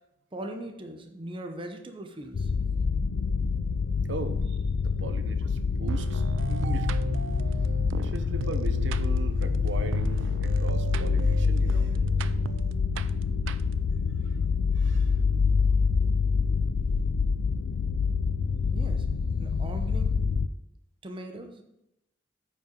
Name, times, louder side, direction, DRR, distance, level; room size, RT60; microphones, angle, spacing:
voice 1, 0.3-2.5 18.7-19.1 19.4-20.1 21.0-21.6, right 1 dB, 25° right, 4 dB, 0.8 m, -40 dB
sound 1, 2.3-20.5, left 5 dB, 85° left, 0.4 m, -26 dB
voice 2, 4.1-4.6 5.0-6.9 8.0-12.0 14.8-15.1, right 2 dB, 70° right, 9 dB, 0.8 m, -39 dB
sound 2, 5.9-14.0, right 5 dB, 85° right, 0.4 m, -35 dB
8.8 x 5.5 x 5.3 m, 0.87 s
head